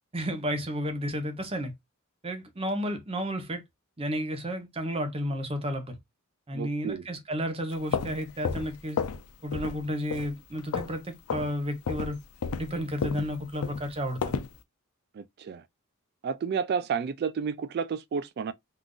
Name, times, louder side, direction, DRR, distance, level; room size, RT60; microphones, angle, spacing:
voice 1, 0.1-1.7 2.2-3.6 4.0-6.0 6.5-9.0 9.4-12.2 12.6-14.3, equal, 25° right, 0.8 m, -32 dB
voice 2, 6.5-7.0 15.1-15.6 16.2-18.5, right 6 dB, 50° right, 0.3 m, -31 dB
sound 1, 7.7-9.3 9.5-9.8 10.1-11.0 11.3-11.5 11.9-14.6, left 5 dB, 85° left, 0.5 m, -32 dB
3.7 x 2.5 x 2.3 m
head